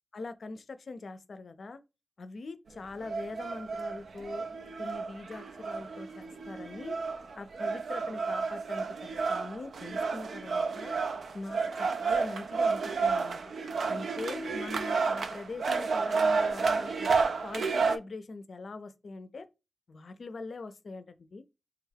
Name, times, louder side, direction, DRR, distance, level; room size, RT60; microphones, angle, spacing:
voice 1, 0.1-1.8 2.2-4.5 4.8-7.0 7.3-11.0 11.3-13.5 13.9-17.1 17.4-19.5 19.9-21.0 21.3-21.4, left 3 dB, 65° left, 0.4 m, -42 dB
sound 1, 3.0-18.0, right 4 dB, 85° right, 0.3 m, -31 dB
3.3 x 2.3 x 3.3 m
cardioid pair, 65°, 0 cm